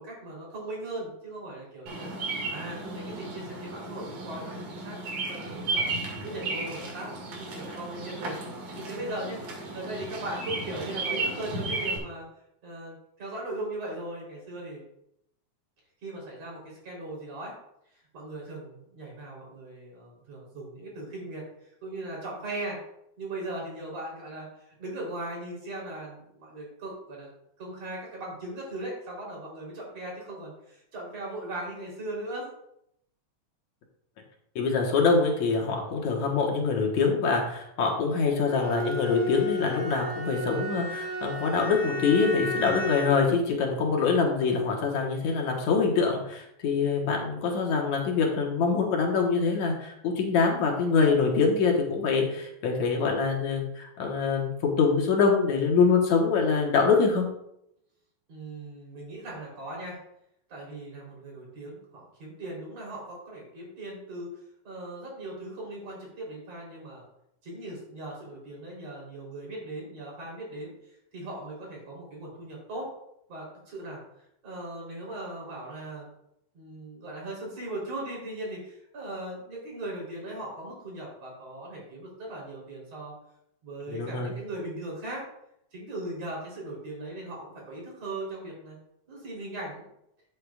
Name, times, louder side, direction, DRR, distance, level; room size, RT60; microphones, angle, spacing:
voice 1, 0.0-2.1 2.5-5.9 6.2-8.4 8.7-9.4 9.7-12.3 12.6-14.8 16.0-17.5 18.1-22.8 23.2-27.3 27.6-32.5 58.3-60.0 60.5-64.3 64.6-67.0 67.4-72.9 73.3-74.0 74.4-76.1 76.5-83.1 83.6-85.3 85.7-88.8 89.1-89.8, right 1 dB, 55° right, -3 dB, 4.7 m, -38 dB
Bird vocalization bird call bird song, 1.9-12.0, right 3 dB, 80° right, 3.4 m, -34 dB
voice 2, 34.6-57.3 83.9-84.3, left 5 dB, 75° left, 0 dB, 2.6 m, -24 dB
Bowed string instrument, 38.4-43.3, left 1 dB, 30° right, 2.0 m, -33 dB
11.5 x 8.6 x 2.4 m, 0.77 s
omnidirectional pair, 3.4 m